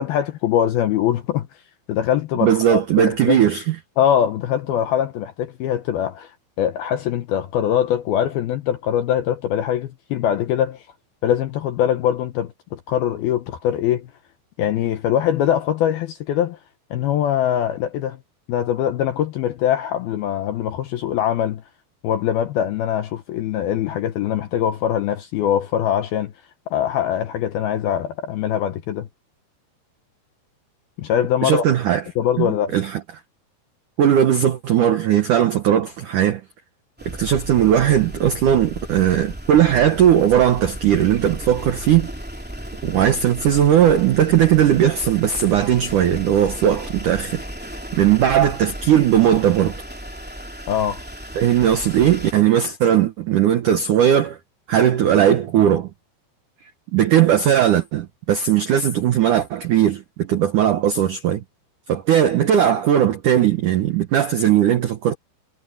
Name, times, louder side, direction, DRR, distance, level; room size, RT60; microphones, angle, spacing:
voice 1, 0.0-1.5 1.9-3.4 4.0-10.9 11.2-14.1 14.6-16.6 16.9-18.2 18.5-21.6 22.0-26.3 26.7-29.1 31.0-31.6 32.2-32.8 50.7-51.0, left 10 dB, 75° left, 2.3 m, -22 dB
voice 2, 2.4-3.7 31.4-32.0 32.4-33.0 34.0-36.4 37.0-42.1 42.8-47.4 47.9-49.8 51.3-54.4 54.7-55.9 56.9-61.4 61.9-65.1, right 10 dB, 80° right, 1.8 m, -18 dB
sound 1, 37.0-52.3, equal, 5° right, 1.3 m, -35 dB
omnidirectional pair, 5.5 m